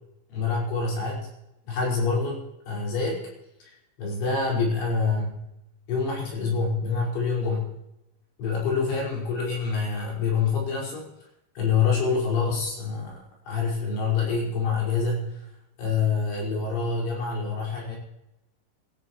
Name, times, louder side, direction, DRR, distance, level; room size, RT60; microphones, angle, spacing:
voice 1, 0.3-1.3 1.7-3.3 3.6-5.3 5.9-7.7 8.4-11.1 11.6-15.5 15.8-18.0, left 5 dB, 70° left, -4 dB, 7.9 m, -26 dB
28.0 x 14.5 x 3.2 m, 0.89 s
omnidirectional pair, 5.6 m